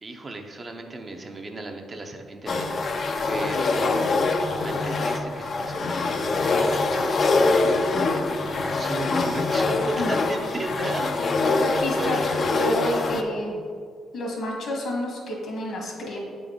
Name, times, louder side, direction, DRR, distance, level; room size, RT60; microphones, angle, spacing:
voice 1, 0.0-3.0 3.3-4.1 4.4-7.4 8.1-11.6 11.9-12.1, right 2 dB, 30° right, 4 dB, 0.6 m, -35 dB
sound 1, 2.5-13.2, left 3 dB, 45° left, 0.5 m, -24 dB
voice 2, 11.4-12.2 12.6-13.6 14.1-16.2, left 1 dB, 65° left, -1 dB, 1.5 m, -29 dB
7.6 x 3.8 x 3.5 m, 2.2 s
cardioid pair, 90°, 0 cm